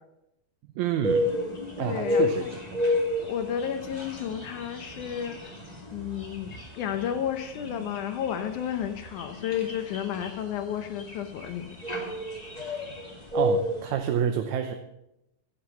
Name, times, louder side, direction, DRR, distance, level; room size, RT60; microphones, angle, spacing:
voice 1, 0.8-1.3 1.8-2.8 13.3-14.7, right 9 dB, 75° right, 6 dB, 2.0 m, -28 dB
sound 1, 1.0-13.9, left 1 dB, 15° left, 1.7 m, -31 dB
voice 2, 1.8-2.5 3.2-5.5 5.9-11.8, left 9 dB, 75° left, 7 dB, 2.3 m, -32 dB
15.5 x 7.9 x 6.9 m, 0.87 s
omnidirectional pair, 3.7 m